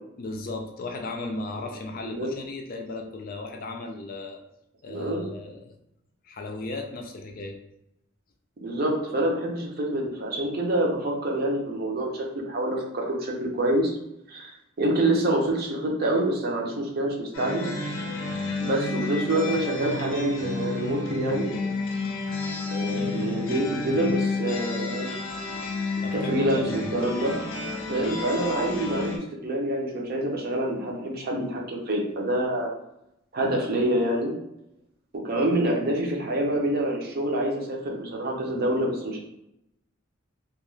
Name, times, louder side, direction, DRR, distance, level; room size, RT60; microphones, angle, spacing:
voice 1, 0.2-4.4 4.8-5.7 6.2-7.6 26.0-26.8, left 2 dB, 45° left, 3 dB, 0.3 m, -36 dB
voice 2, 4.9-5.3 8.6-14.0 14.3-17.7 18.6-21.5 22.7-25.1 26.1-27.4 27.9-32.7 33.3-34.3 35.2-39.2, right 1 dB, 50° right, 0 dB, 0.6 m, -26 dB
sound 1, 17.3-29.2, left 3 dB, 90° left, 0.6 m, -30 dB
2.3 x 2.3 x 3.1 m, 0.82 s
head